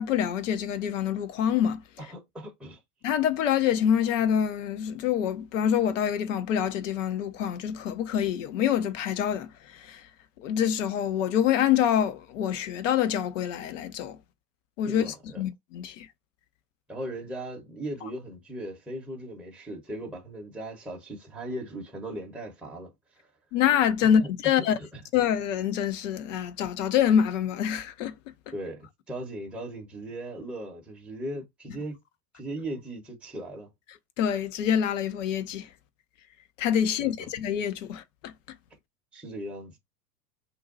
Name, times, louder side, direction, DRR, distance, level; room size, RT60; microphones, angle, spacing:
voice 1, 0.0-1.8 3.0-10.1 10.4-14.2 14.8-16.1 23.5-24.8 25.1-28.1 34.2-35.7 36.6-38.3, left 9 dB, 50° left, 0.7 m, -26 dB
voice 2, 2.0-2.8 14.9-15.4 16.9-23.3 24.0-24.1 24.8-25.0 28.5-32.0 32.3-33.7 36.9-37.3 39.1-39.8, right 1 dB, 5° right, 0.8 m, -38 dB
2.7 x 2.1 x 3.9 m
figure-of-eight pair, 85°, 47 cm